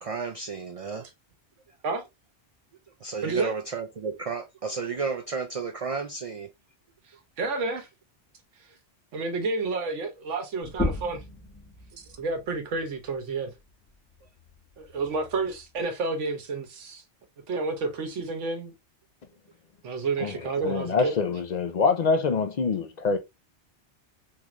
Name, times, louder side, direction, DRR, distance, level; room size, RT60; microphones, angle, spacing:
voice 1, 0.0-1.1 3.0-6.5 12.1-12.2 14.9-15.0, right 5 dB, 55° right, 0.4 m, -32 dB
voice 2, 3.2-3.5 7.4-7.9 9.1-11.2 12.0-13.5 14.8-17.0 17.5-18.7 19.8-21.1, right 3 dB, 90° right, 1.2 m, -30 dB
sound 1, 10.6-15.8, left 2 dB, 10° left, 1.0 m, -37 dB
voice 3, 20.2-23.2, left 4 dB, 55° left, 0.5 m, -25 dB
3.9 x 2.5 x 2.9 m
omnidirectional pair, 1.2 m